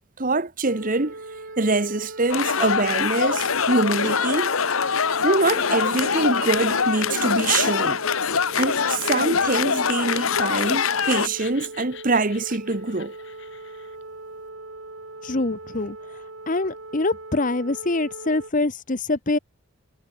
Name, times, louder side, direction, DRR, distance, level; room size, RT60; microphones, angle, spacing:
voice 1, 0.2-1.1 1.6-4.5 5.2-8.0 8.6-13.1, right 3 dB, 40° right, 1.4 m, -24 dB
sound 1, 0.6-18.5, right 2 dB, 65° right, 2.5 m, -40 dB
sound 2, 2.3-11.3, left 6 dB, 80° left, 1.1 m, -23 dB
Laughter, 8.2-14.0, left 9 dB, 60° left, 4.6 m, -47 dB
voice 2, 15.2-16.0 16.5-19.4, left 2 dB, 40° left, 1.1 m, -24 dB
head